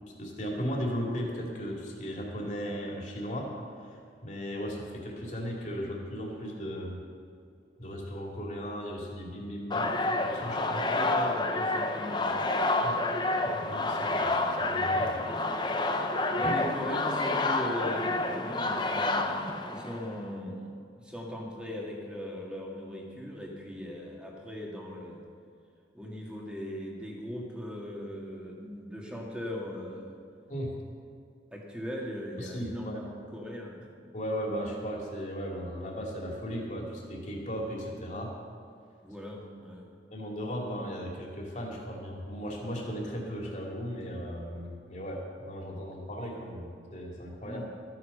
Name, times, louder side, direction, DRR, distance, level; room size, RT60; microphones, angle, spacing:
voice 1, 0.2-7.0 7.8-10.9 12.8-13.0 13.4-14.3 14.6-15.2 16.4-16.5 30.5-30.7 32.4-33.0 34.1-38.3 40.1-47.7, equal, 40° left, -1 dB, 2.5 m, -36 dB
sound 1, 9.7-20.2, left 2 dB, 25° left, 0.7 m, -29 dB
voice 2, 10.9-12.5 16.2-19.3 19.7-25.3 25.9-30.1 31.5-33.7 39.0-39.9 47.4-47.7, left 1 dB, 5° right, -2 dB, 1.9 m, -39 dB
14.0 x 9.7 x 6.6 m, 2.4 s
head